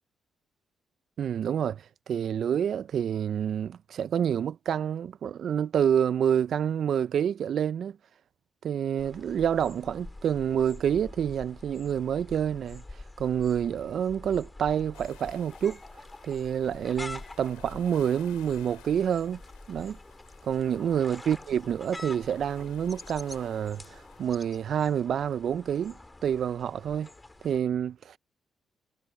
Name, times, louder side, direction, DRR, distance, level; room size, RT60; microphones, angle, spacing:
voice 1, 1.2-8.0 8.6-12.8 13.2-15.8 16.2-19.4 19.7-20.0 20.4-27.1 27.4-28.2, right 8 dB, 65° right, 0.9 m, -28 dB
sound 1, 9.0-27.6, left 2 dB, 20° left, 4.0 m, -46 dB
sound 2, 14.9-24.3, left 22 dB, 85° left, 5.2 m, -57 dB
hypercardioid pair, 45°, 0 cm